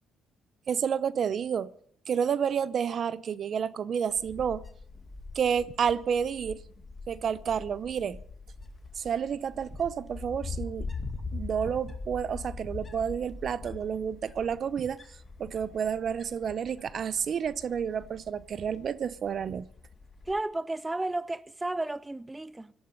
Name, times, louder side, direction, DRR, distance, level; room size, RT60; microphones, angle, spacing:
voice 1, 0.7-1.7 2.1-4.6 5.3-6.6 7.1-8.2 9.0-10.9 11.3-15.0 15.4-19.7, right 7 dB, 55° right, 0.8 m, -30 dB
Wind, 4.1-20.4, left 3 dB, 30° left, 2.3 m, -42 dB
voice 2, 20.3-22.7, right 2 dB, 15° right, 0.6 m, -33 dB
18.0 x 12.0 x 5.4 m
cardioid pair, 90°, 0 cm